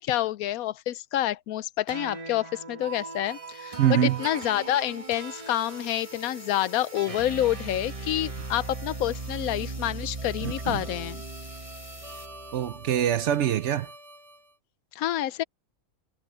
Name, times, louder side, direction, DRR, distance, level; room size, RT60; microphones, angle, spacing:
voice 1, 0.0-11.2 14.9-15.4, left 13 dB, 90° left, 1.1 m, -28 dB
sound 1, 1.9-14.4, right 3 dB, 25° right, 1.1 m, -39 dB
voice 2, 3.8-4.2 10.4-10.8 12.5-13.9, right 10 dB, 65° right, 0.8 m, -24 dB
sound 2, 4.1-12.3, left 1 dB, 10° left, 2.0 m, -50 dB
omnidirectional pair, 1.5 m